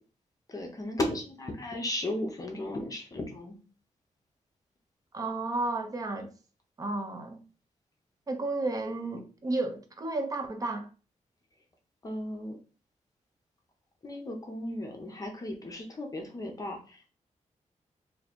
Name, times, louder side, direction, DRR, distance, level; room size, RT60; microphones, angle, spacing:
voice 1, 0.5-3.6 12.0-12.6 14.0-17.1, left 1 dB, 30° left, 0.6 m, -35 dB
voice 2, 5.1-6.3 6.8-7.4 8.3-10.9, right 2 dB, 30° right, 0.5 m, -32 dB
2.7 x 2.6 x 4.1 m
wide cardioid pair, 180°, 13 cm